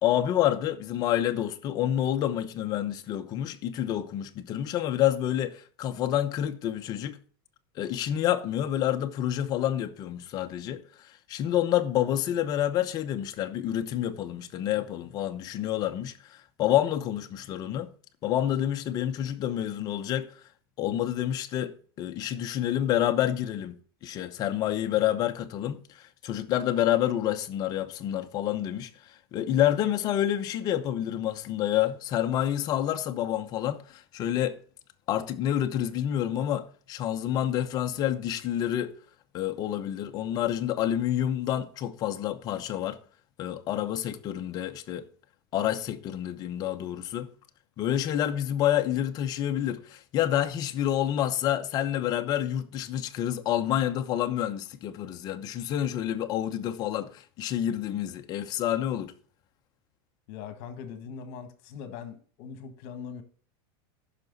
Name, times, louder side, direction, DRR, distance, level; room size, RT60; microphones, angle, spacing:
voice 1, 0.0-7.2 7.8-17.9 18.2-20.3 20.8-23.7 24.0-34.6 35.1-39.0 39.3-43.0 43.4-45.1 45.5-47.3 47.8-59.1, left 11 dB, 30° left, 0.8 m, -28 dB
voice 2, 60.3-63.2, left 7 dB, 50° left, 1.6 m, -41 dB
14.5 x 6.0 x 4.0 m
supercardioid pair, 165°, 12 cm